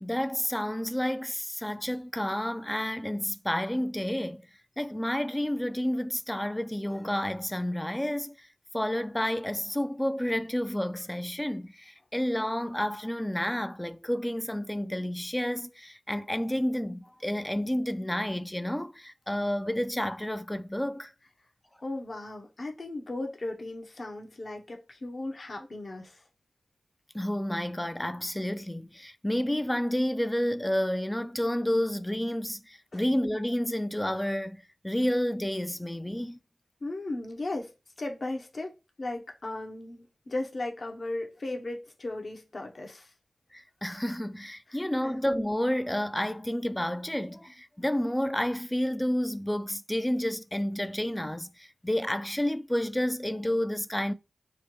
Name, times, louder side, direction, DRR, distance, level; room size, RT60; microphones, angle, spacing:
voice 1, 0.0-4.4 4.8-8.5 8.7-21.1 27.1-36.4 43.5-54.1, left 1 dB, 10° left, 0.4 m, -30 dB
voice 2, 21.8-26.2 32.9-33.0 36.8-37.7 38.0-43.1 44.7-45.2, left 2 dB, 55° left, 0.9 m, -36 dB
5.4 x 2.2 x 3.1 m
cardioid pair, 45°, 0 cm